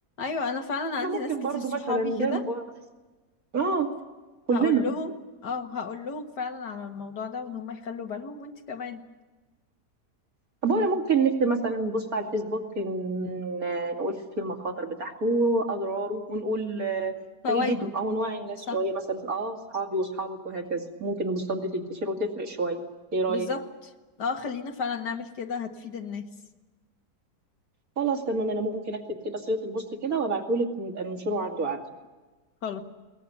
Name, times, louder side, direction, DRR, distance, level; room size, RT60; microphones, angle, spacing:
voice 1, 0.2-2.4 4.5-5.1 5.4-9.1 17.4-17.9 18.7-18.8 23.3-23.7 24.2-26.3 32.6-32.8, left 4 dB, 80° left, 5 dB, 2.3 m, -32 dB
voice 2, 1.0-2.6 3.5-3.9 4.5-4.9 10.6-17.2 17.5-22.8 23.1-23.5 28.0-31.8, right 3 dB, 60° right, 2 dB, 2.9 m, -28 dB
21.5 x 19.5 x 9.3 m, 1.2 s
omnidirectional pair, 1.8 m